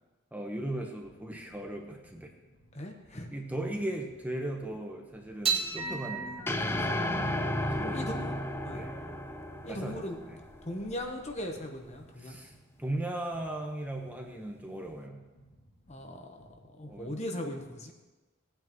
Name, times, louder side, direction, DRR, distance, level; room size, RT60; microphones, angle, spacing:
voice 1, 0.3-2.3 3.3-7.1 7.7-8.0 8.7-8.9 9.7-10.4 12.2-12.5 12.8-15.2 16.8-17.1, right 1 dB, 10° right, 1 dB, 1.1 m, -37 dB
sound 1, 1.0-17.4, equal, 55° left, 2.2 m, -60 dB
voice 2, 2.7-3.3 4.6-4.8 6.2-6.3 7.5-8.4 8.6-8.8 9.6-10.2 10.6-12.4 15.9-16.4 16.8-17.9, left 1 dB, 35° left, 3 dB, 1.1 m, -39 dB
sound 2, 5.4-12.0, right 5 dB, 30° right, 1.7 m, -38 dB
sound 3, 6.5-10.9, left 1 dB, 10° left, 0.5 m, -33 dB
17.5 x 9.0 x 3.1 m, 1.2 s
head